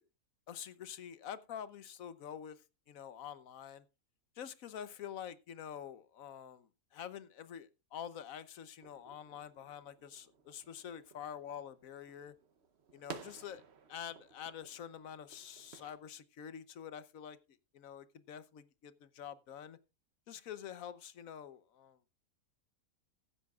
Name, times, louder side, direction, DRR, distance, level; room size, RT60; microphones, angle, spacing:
voice 1, 0.5-2.6 2.9-3.8 4.4-12.3 12.9-13.6 13.9-17.4 17.7-19.8 20.3-22.0, left 9 dB, 70° left, 1.3 m, -47 dB
sound 1, 8.8-16.0, right 5 dB, 50° right, 1.1 m, -54 dB
15.5 x 12.5 x 2.4 m
omnidirectional pair, 1.5 m